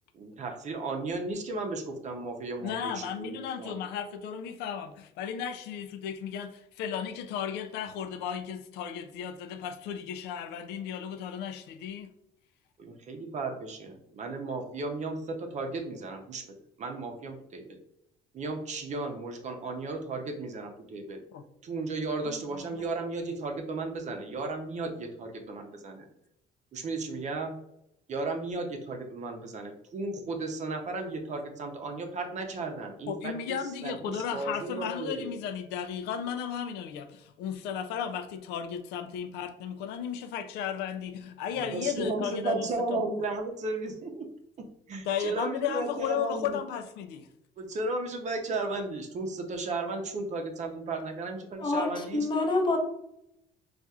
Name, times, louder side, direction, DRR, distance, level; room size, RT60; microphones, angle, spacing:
voice 1, 0.1-3.8 12.8-17.8 18.3-21.2 21.6-26.0 26.7-27.5 28.1-35.3 41.6-44.3 44.9-46.6 47.6-52.3, right 3 dB, 45° right, 3 dB, 0.6 m, -35 dB
voice 2, 2.6-12.1 21.3-21.4 22.3-22.8 33.1-43.0 45.1-47.3, left 8 dB, 85° left, 8 dB, 0.4 m, -35 dB
voice 3, 51.6-52.8, left 2 dB, 25° left, 2 dB, 0.7 m, -27 dB
4.1 x 2.4 x 2.4 m, 0.80 s
cardioid pair, 110°, 17 cm